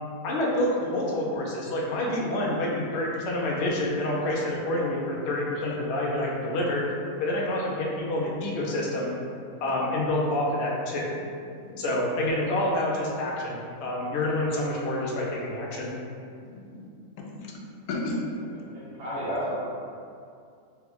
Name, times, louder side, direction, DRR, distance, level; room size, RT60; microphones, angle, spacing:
voice 1, 0.2-6.8 7.2-9.1 9.6-11.1 11.8-15.9, left 1 dB, 60° left, -3 dB, 0.7 m, -27 dB
voice 2, 11.5-11.8 14.1-14.3 16.4-16.9 17.2-18.2, left 2 dB, 80° left, -1 dB, 1.1 m, -35 dB
voice 3, 18.5-19.5, equal, 75° right, -8 dB, 1.5 m, -32 dB
3.4 x 2.2 x 3.4 m, 2.4 s
omnidirectional pair, 1.6 m